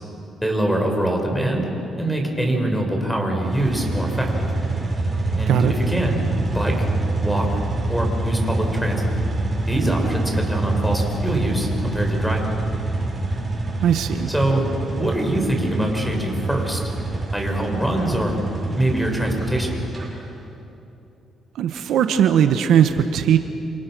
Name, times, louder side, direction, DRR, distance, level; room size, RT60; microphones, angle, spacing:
voice 1, 0.4-1.7 2.0-4.5 5.4-6.2 6.5-6.9 7.2-7.5 7.9-9.1 9.7-12.5 14.3-14.6 15.0-16.8 17.3-18.4 18.7-19.7, right 1 dB, ahead, 1 dB, 6.1 m, -23 dB
sound 1, 3.4-20.1, right 2 dB, 30° right, 8.0 m, -26 dB
voice 2, 13.8-14.3 21.6-23.4, right 9 dB, 80° right, 8 dB, 1.2 m, -18 dB
28.0 x 28.0 x 6.4 m, 2.8 s
cardioid pair, 90°, 0 cm